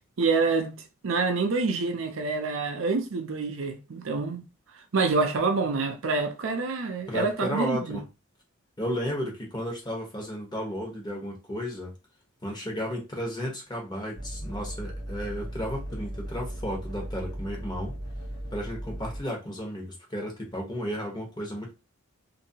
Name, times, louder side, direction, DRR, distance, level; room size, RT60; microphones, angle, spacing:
voice 1, 0.2-0.8 1.0-4.4 4.9-8.0, right 4 dB, 70° right, 0.5 m, -27 dB
voice 2, 7.1-8.0 8.8-11.9 12.4-18.0 18.5-21.7, equal, 20° left, 1.0 m, -33 dB
sound 1, 14.1-19.2, right 1 dB, 75° left, 1.3 m, -37 dB
2.8 x 2.6 x 2.7 m
head